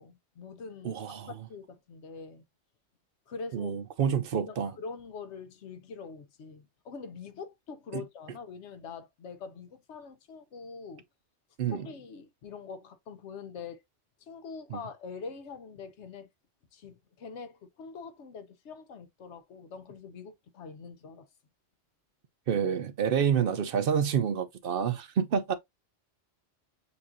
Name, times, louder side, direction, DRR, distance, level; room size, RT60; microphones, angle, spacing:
voice 1, 0.0-2.4 3.3-3.7 4.1-11.0 11.7-13.8 14.2-16.3 16.7-21.3, left 5 dB, 70° left, 1.0 m, -44 dB
voice 2, 0.8-1.3 3.5-4.7 7.9-8.0 11.6-11.9 14.7-14.8 22.5-25.5, right 7 dB, 55° right, 0.7 m, -28 dB
6.9 x 2.5 x 2.6 m
omnidirectional pair, 1.2 m